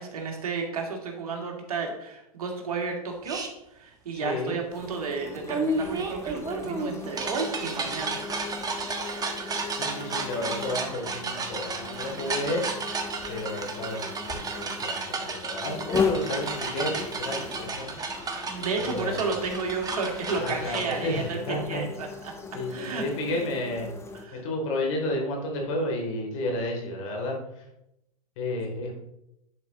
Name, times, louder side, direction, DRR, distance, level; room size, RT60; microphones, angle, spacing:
voice 1, 0.0-3.4 3.7-9.2 18.5-22.1 22.7-23.0 24.1-24.4, right 4 dB, 75° right, 2 dB, 2.0 m, -32 dB
sound 1, 3.2-3.5 5.5-20.9, right 3 dB, 20° right, 1.2 m, -33 dB
voice 2, 4.1-4.6 9.8-12.6 13.3-17.9 18.8-19.2 20.3-21.8 22.5-23.9 24.3-27.6 28.4-29.0, left 1 dB, 55° left, 0 dB, 3.2 m, -32 dB
sound 2, 4.7-24.2, left 4 dB, 15° left, 1.1 m, -37 dB
sound 3, 6.0-21.6, left 3 dB, 30° left, 3.2 m, -49 dB
10.5 x 5.0 x 4.0 m, 0.85 s
hypercardioid pair, 110°, 19 cm